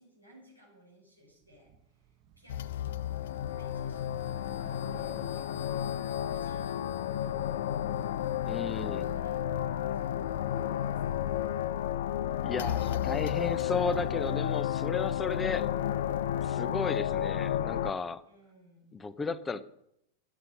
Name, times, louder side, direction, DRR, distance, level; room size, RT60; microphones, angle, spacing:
voice 1, 0.0-5.8 6.0-7.9 8.4-10.2 10.6-11.6 18.2-19.1, equal, 85° left, -1 dB, 5.3 m, -59 dB
sound 1, 1.3-9.4 9.8-10.9, right 8 dB, 45° right, 0.9 m, -56 dB
sound 2, 2.5-17.9, left 10 dB, 60° left, 0.4 m, -32 dB
voice 2, 8.5-9.0 12.4-15.7 16.4-18.2 18.9-19.6, left 4 dB, 15° left, 16 dB, 0.8 m, -34 dB
13.5 x 9.0 x 5.7 m, 0.77 s
figure-of-eight pair, 90°, 0 cm